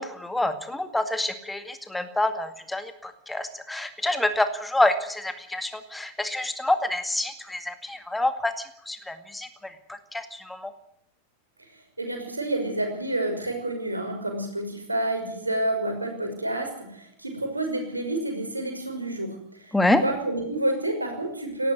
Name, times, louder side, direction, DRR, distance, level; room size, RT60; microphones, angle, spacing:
voice 1, 0.0-10.7 19.7-20.0, left 1 dB, 5° left, 9 dB, 2.1 m, -27 dB
voice 2, 12.0-19.4 19.7-21.7, right 1 dB, 85° right, 4 dB, 5.7 m, -29 dB
19.0 x 15.0 x 9.6 m, 0.72 s
figure-of-eight pair, 90°, 0 cm